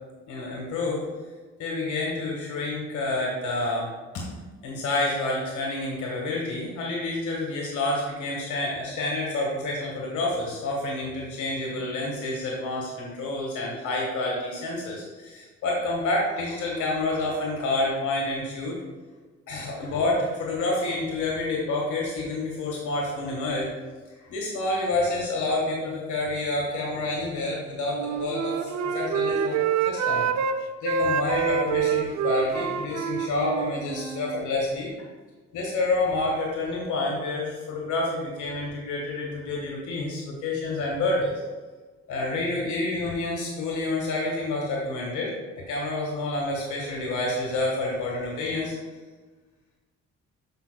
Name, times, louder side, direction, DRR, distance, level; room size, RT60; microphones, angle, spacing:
voice 1, 0.3-1.1 1.6-3.9 4.1-4.3 4.6-18.8 19.5-23.7 24.2-30.2 30.8-34.9 35.5-41.3 42.1-45.3 45.7-48.7, left 2 dB, 80° left, -3 dB, 1.6 m, -28 dB
Wind instrument woodwind instrument, 27.8-30.6 30.8-34.5, right 7 dB, 65° right, 0.6 m, -27 dB
11.5 x 5.3 x 2.3 m, 1.3 s
cardioid pair, 90°, 30 cm